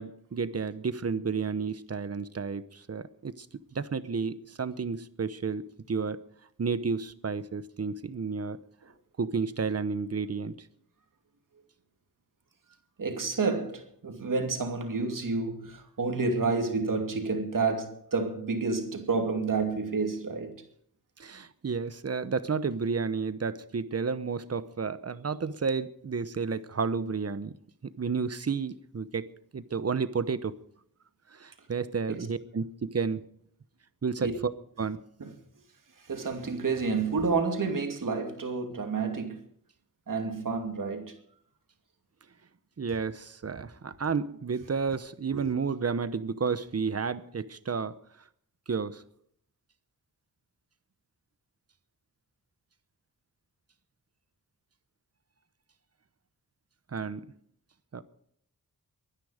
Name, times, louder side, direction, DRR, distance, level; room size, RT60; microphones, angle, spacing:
voice 1, 0.0-3.5 3.7-6.2 6.6-8.6 9.2-10.6 21.2-27.5 28.0-29.3 29.5-30.5 31.3-33.2 34.0-34.5 34.8-35.0 42.8-48.0 48.7-49.0 56.9-57.3 57.9-58.0, right 5 dB, 45° right, 1.0 m, -31 dB
voice 2, 13.0-20.6 32.1-32.3 34.2-34.3 35.2-35.3 36.1-39.4 40.1-41.1 45.3-45.5, right 4 dB, 60° right, 2.6 m, -29 dB
23.0 x 10.5 x 5.0 m
wide cardioid pair, 120°, 36 cm